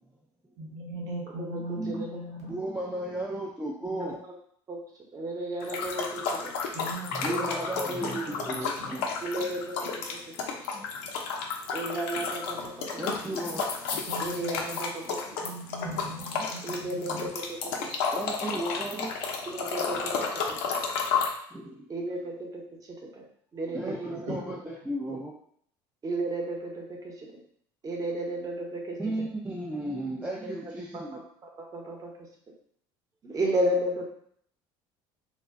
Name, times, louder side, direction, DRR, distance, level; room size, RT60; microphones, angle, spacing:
voice 1, 0.6-2.6 6.7-7.3 7.8-9.0 10.7-10.8 14.1-14.9 15.4-17.3 17.8-17.9 23.8-24.5, right 1 dB, 80° right, -3 dB, 1.1 m, -39 dB
voice 2, 1.4-2.2 4.0-4.1 4.7-4.8 5.1-6.5 7.2-7.7 9.2-10.0 11.7-12.7 13.4-13.5 14.2-15.4 16.6-17.9 19.5-20.9 21.9-23.2 23.5-24.3 26.0-27.4 27.8-29.2 30.2-30.7 31.1-31.2 31.7-32.1 33.2-34.0, right 1 dB, 30° right, 0 dB, 0.8 m, -33 dB
voice 3, 2.5-4.2 7.1-9.0 13.0-13.8 16.4-16.5 18.1-19.1 21.5-21.9 23.7-25.3 29.0-31.2, right 1 dB, 10° right, -3 dB, 0.3 m, -34 dB
sound 1, 5.6-21.3, left 5 dB, 90° left, 0.5 m, -32 dB
2.2 x 2.1 x 3.5 m, 0.64 s
supercardioid pair, 100°, 12 cm